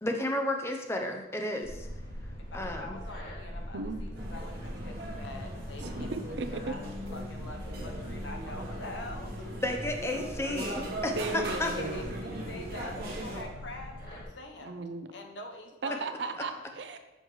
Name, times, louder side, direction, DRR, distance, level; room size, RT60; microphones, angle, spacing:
voice 1, 0.0-1.9 2.5-3.0 9.5-11.7, left 1 dB, 15° left, 3 dB, 0.6 m, -32 dB
sound 1, 1.6-14.3, equal, 55° left, 2.3 m, -43 dB
voice 2, 2.5-6.1 6.5-6.8 7.1-9.3 11.3-14.8 15.1-16.7, left 2 dB, 80° left, 3 dB, 0.9 m, -45 dB
sound 2, 4.1-13.4, right 1 dB, 55° right, 1.3 m, -39 dB
voice 3, 5.8-6.7 11.2-12.1 14.6-15.1 15.8-17.0, right 3 dB, 70° right, 8 dB, 0.6 m, -36 dB
6.5 x 6.3 x 3.2 m, 1.0 s
head